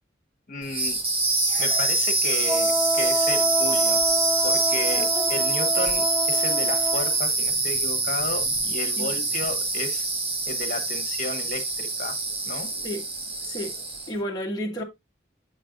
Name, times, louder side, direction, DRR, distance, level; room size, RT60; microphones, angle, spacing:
voice 1, 0.5-1.0 1.6-4.0 4.4-10.1 10.5-12.2 12.4-12.7, left 3 dB, 45° left, 1.4 m, -33 dB
sound 1, 0.6-14.2, right 3 dB, 30° right, 1.3 m, -25 dB
Wind instrument woodwind instrument, 2.4-7.2, equal, 10° right, 0.4 m, -28 dB
voice 2, 4.9-5.2 9.0-9.1 12.8-13.0 13.4-13.7 14.1-14.8, equal, 20° left, 1.2 m, -31 dB
7.9 x 5.4 x 2.5 m
head